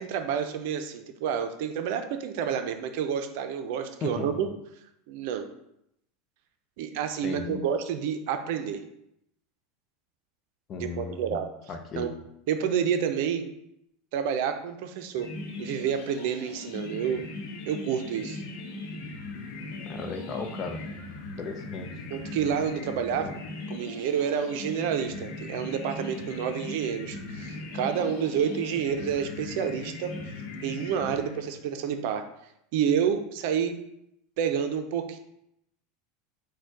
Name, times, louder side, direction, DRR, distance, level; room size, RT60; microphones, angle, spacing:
voice 1, 0.0-4.5 5.1-5.5 6.8-8.8 10.7-11.5 11.9-12.1 12.5-13.5 14.1-15.3 15.6-17.3 17.7-18.4 22.1-23.3 23.7-30.1 30.6-32.3 32.7-33.7 34.4-35.2, right 8 dB, 65° right, 7 dB, 0.5 m, -29 dB
voice 2, 4.0-4.4 7.2-7.7 10.7-11.4 11.7-12.1 19.9-20.8 21.4-21.9 23.1-23.3, left 4 dB, 40° left, 6 dB, 0.6 m, -36 dB
sound 1, 15.2-31.7, left 2 dB, 70° left, 0.8 m, -39 dB
4.2 x 2.2 x 4.6 m, 0.79 s
hypercardioid pair, 100°, 0 cm